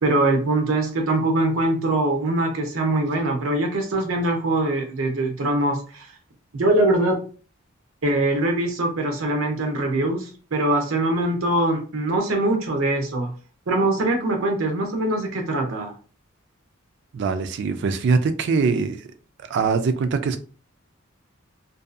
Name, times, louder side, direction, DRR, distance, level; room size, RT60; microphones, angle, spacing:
voice 1, 0.0-6.1 6.5-7.2 8.0-13.3 13.7-15.9, right 2 dB, 85° right, 3 dB, 0.7 m, -22 dB
voice 2, 17.1-19.0 19.5-20.4, right 4 dB, 60° right, 10 dB, 0.3 m, -22 dB
2.6 x 2.3 x 2.4 m, 0.38 s
head